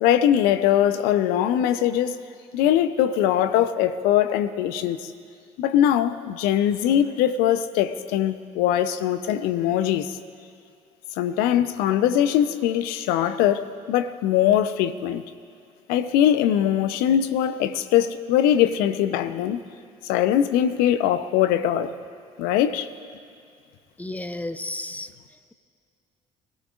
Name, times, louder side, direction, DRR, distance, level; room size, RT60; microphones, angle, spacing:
voice 1, 0.0-2.2 2.5-5.1 5.6-10.1 11.2-15.2 15.9-19.6 20.1-21.9 22.4-22.9, left 10 dB, 65° left, 0.8 m, -21 dB
voice 2, 24.0-25.1, left 1 dB, 10° left, 0.8 m, -32 dB
25.0 x 17.0 x 2.5 m
figure-of-eight pair, 55°, 16 cm